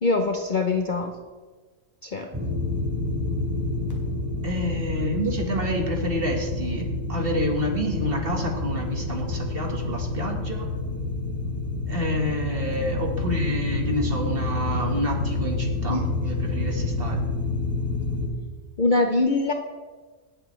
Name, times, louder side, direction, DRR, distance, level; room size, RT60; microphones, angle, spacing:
voice 1, 0.0-1.1 2.0-2.3 15.9-16.0 18.8-19.5, left 3 dB, 45° left, 3 dB, 0.7 m, -23 dB
sound 1, 2.3-18.3, left 3 dB, 15° right, 2.4 m, -28 dB
voice 2, 4.4-10.7 11.9-17.2, equal, 40° right, 1 dB, 1.7 m, -28 dB
18.5 x 8.3 x 3.2 m, 1.4 s
omnidirectional pair, 1.5 m